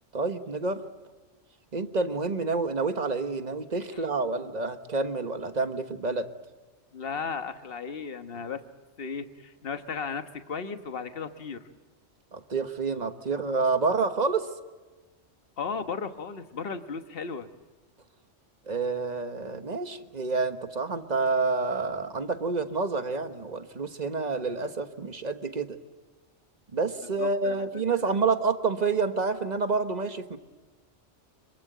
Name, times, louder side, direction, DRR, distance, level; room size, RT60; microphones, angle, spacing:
voice 1, 0.1-0.9 1.7-6.3 12.3-14.5 18.7-25.8 26.7-30.4, right 4 dB, 35° right, 8 dB, 1.4 m, -28 dB
voice 2, 6.9-8.6 9.0-11.7 15.6-17.5 27.2-28.2, left 5 dB, 55° left, 8 dB, 1.4 m, -35 dB
25.5 x 23.5 x 9.3 m, 1.3 s
omnidirectional pair, 1.2 m